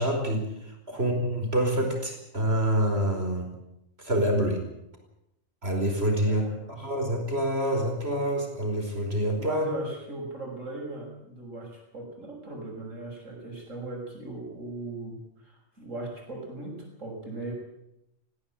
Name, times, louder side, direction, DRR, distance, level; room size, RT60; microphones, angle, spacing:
voice 1, 0.0-3.5 4.0-4.6 5.6-9.6, right 1 dB, 50° right, 3 dB, 5.2 m, -27 dB
voice 2, 6.3-6.9 9.4-17.5, right 2 dB, 75° right, 1 dB, 6.6 m, -38 dB
19.5 x 16.0 x 9.0 m, 0.86 s
omnidirectional pair, 1.3 m